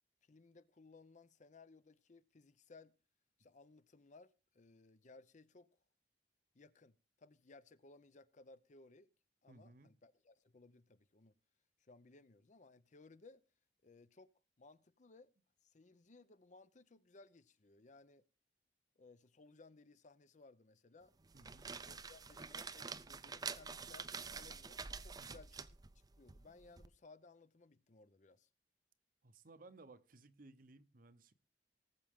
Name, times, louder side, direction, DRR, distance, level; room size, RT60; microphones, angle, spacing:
voice 1, 0.2-3.0 3.4-5.7 6.5-9.1 9.4-11.3 11.8-13.4 13.8-14.3 14.6-15.3 15.6-18.2 19.0-21.1 21.9-25.7 25.9-28.5, left 3 dB, 45° left, 0.7 m, -62 dB
voice 2, 9.5-9.9 21.3-21.7 25.2-25.4 29.2-31.3, right 2 dB, 55° right, 0.8 m, -60 dB
sound 1, 21.2-26.9, right 5 dB, 20° right, 0.5 m, -48 dB
18.5 x 7.5 x 3.6 m
head